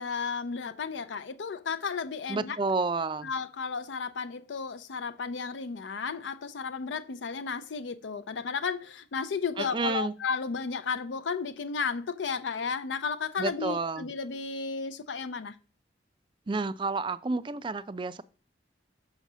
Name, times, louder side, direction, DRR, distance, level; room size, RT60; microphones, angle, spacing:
voice 1, 0.0-2.6 3.2-15.6, left 5 dB, 80° left, 0.5 m, -33 dB
voice 2, 2.3-3.3 9.6-10.1 13.4-14.1 16.5-18.2, right 3 dB, 25° right, 0.3 m, -30 dB
6.3 x 4.1 x 6.0 m
head